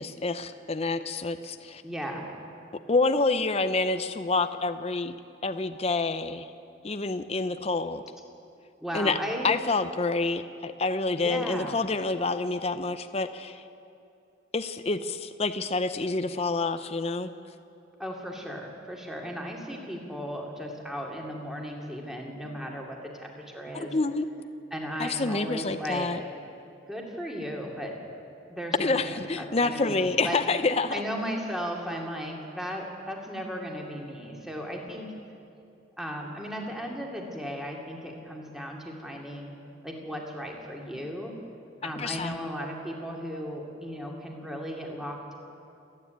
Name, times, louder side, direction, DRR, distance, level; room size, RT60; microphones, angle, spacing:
voice 1, 0.0-1.8 2.9-5.1 5.4-6.5 6.8-8.0 8.9-9.2 9.4-13.6 14.5-17.3 23.8-24.2 25.0-26.2 28.8-31.0 41.8-42.3, left 3 dB, 30° left, 10 dB, 0.6 m, -28 dB
voice 2, 1.8-2.3 8.8-9.5 11.2-11.7 18.0-24.0 24.7-26.1 26.9-28.0 28.5-30.4 30.9-35.1 36.0-39.5 39.8-41.3 41.8-45.3, equal, ahead, -1 dB, 2.4 m, -36 dB
28.0 x 9.8 x 9.4 m, 2.6 s
head